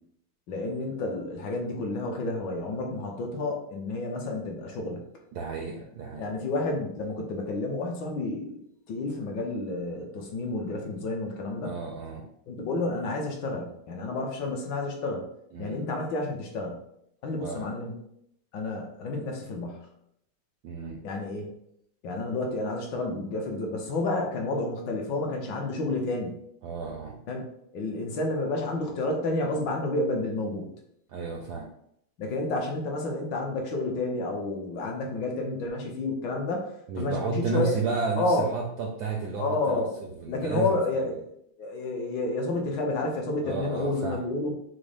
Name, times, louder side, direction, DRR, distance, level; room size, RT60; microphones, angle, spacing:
voice 1, 0.5-5.0 6.2-8.6 8.9-11.8 12.5-15.3 15.6-16.8 17.2-18.0 18.5-19.9 21.0-21.5 22.0-26.4 27.3-27.4 27.7-30.7 32.2-36.7 37.0-37.7 38.2-38.5 39.4-39.9 40.3-41.2 41.6-44.5, left 2 dB, 70° left, 1 dB, 1.3 m, -30 dB
voice 2, 5.3-6.3 11.6-12.2 15.5-15.8 17.4-17.7 20.6-21.0 26.6-27.2 31.1-31.7 36.9-40.8 43.4-44.2, right 4 dB, 75° right, 1 dB, 0.9 m, -32 dB
6.2 x 2.1 x 3.3 m, 0.74 s
omnidirectional pair, 2.2 m